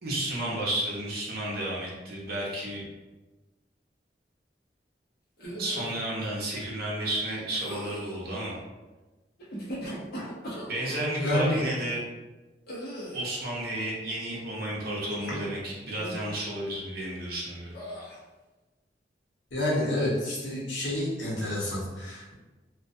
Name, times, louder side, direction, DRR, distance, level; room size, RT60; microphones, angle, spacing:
voice 1, 0.0-2.8 5.6-8.6 10.7-12.0 13.1-17.7, right 1 dB, 60° right, -4 dB, 0.6 m, -32 dB
sound 1, 5.4-6.0 7.5-8.2 9.4-11.1 12.7-13.4 15.1-15.6 16.0-16.4 17.7-18.2, equal, 60° left, 0.7 m, -39 dB
voice 2, 11.2-11.6 15.3-15.4 19.5-22.3, left 1 dB, 85° left, -6 dB, 0.9 m, -29 dB
2.2 x 2.2 x 2.6 m, 1.2 s
head